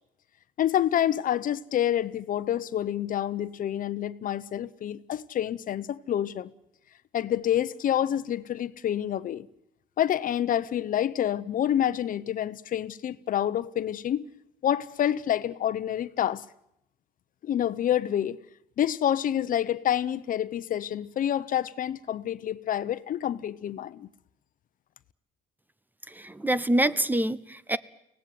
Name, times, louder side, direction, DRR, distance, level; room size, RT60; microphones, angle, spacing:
voice 1, 0.6-6.5 7.1-9.5 10.0-14.3 14.6-16.4 17.4-18.4 18.8-24.1, left 10 dB, 55° left, 0.9 m, -28 dB
voice 2, 26.1-27.8, right 1 dB, 10° right, 0.8 m, -26 dB
24.0 x 18.0 x 9.5 m
cardioid pair, 110°, 17 cm